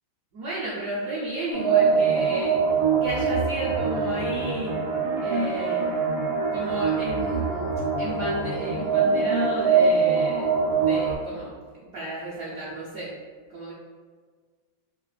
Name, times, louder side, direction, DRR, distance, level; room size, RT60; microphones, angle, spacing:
voice 1, 0.3-2.6 3.0-4.8 5.2-5.9 6.5-7.7 8.0-10.5 10.8-11.5 11.9-13.1 13.5-13.7, right 2 dB, 65° right, -7 dB, 0.9 m, -32 dB
sound 1, 1.5-11.2, right 5 dB, 85° right, 1.6 m, -23 dB
4.9 x 2.5 x 2.5 m, 1.5 s
omnidirectional pair, 2.2 m